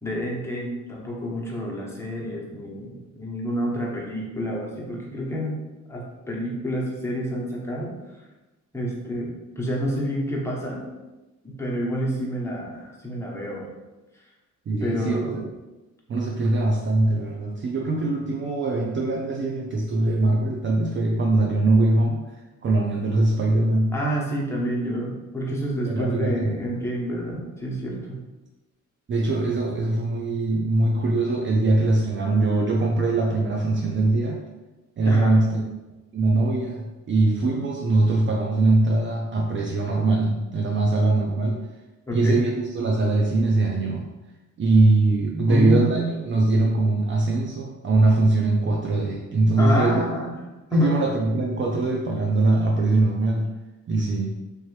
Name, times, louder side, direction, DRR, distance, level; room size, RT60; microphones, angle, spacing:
voice 1, 0.0-5.6 5.9-7.9 8.7-9.3 9.6-10.8 11.6-13.7 14.8-15.4 23.9-28.2 35.0-35.4 42.1-42.4 45.5-46.2 49.6-50.4 50.7-50.9, equal, 10° left, -4 dB, 1.1 m, -28 dB
voice 2, 14.7-15.5 16.1-23.9 25.5-25.6 25.9-26.6 29.1-34.4 35.0-35.7 36.1-41.6 42.1-44.1 44.6-50.0 50.7-53.5 53.9-54.3, right 2 dB, 40° right, -1 dB, 0.5 m, -22 dB
3.3 x 3.0 x 3.2 m, 1.1 s
cardioid pair, 90°, 30 cm